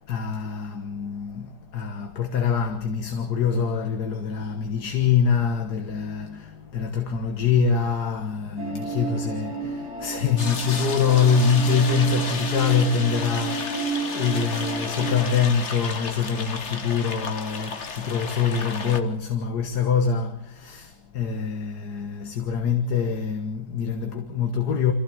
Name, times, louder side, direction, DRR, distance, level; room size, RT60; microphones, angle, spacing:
voice 1, 0.0-24.9, left 6 dB, 70° left, 2.0 m, -24 dB
sound 1, 8.6-15.4, right 4 dB, 65° right, 5.2 m, -32 dB
sound 2, 10.4-19.0, left 5 dB, 45° left, 1.7 m, -33 dB
26.0 x 15.5 x 7.4 m
omnidirectional pair, 1.8 m